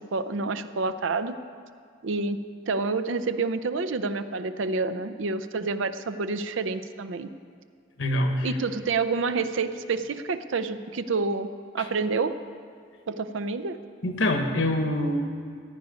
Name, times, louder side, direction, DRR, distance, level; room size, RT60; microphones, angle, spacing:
voice 1, 0.0-1.4 2.0-2.4 2.7-7.3 8.4-11.5 11.7-12.3 13.1-13.8, right 4 dB, 70° right, 11 dB, 0.5 m, -28 dB
voice 2, 8.0-8.6 11.8-11.9 14.0-15.2, left 1 dB, 65° left, 4 dB, 1.2 m, -25 dB
15.0 x 9.5 x 5.2 m, 2.2 s
head